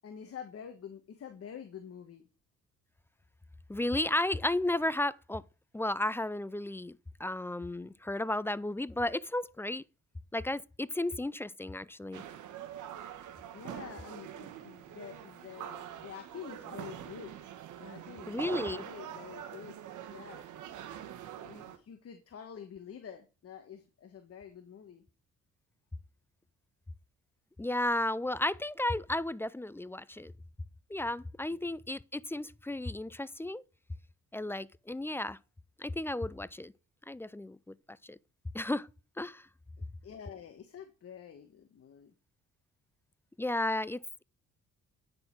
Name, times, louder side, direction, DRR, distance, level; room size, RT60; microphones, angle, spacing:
voice 1, 0.0-2.3 13.5-17.4 17.7-18.4 18.7-19.8 20.1-20.4 21.4-25.0 31.5-31.6 40.0-42.1, left 8 dB, 50° left, 1.3 m, -47 dB
voice 2, 3.7-5.4 5.7-9.8 10.3-12.2 18.3-18.8 27.6-30.3 30.9-33.6 34.3-35.4 35.8-36.7 37.1-37.7 38.0-38.2 38.5-38.9 39.2-39.5 43.4-44.2, left 1 dB, 10° left, 0.4 m, -33 dB
sound 1, 12.1-21.8, right 10 dB, 85° right, 1.3 m, -44 dB
9.7 x 6.4 x 4.5 m
cardioid pair, 90°, 30 cm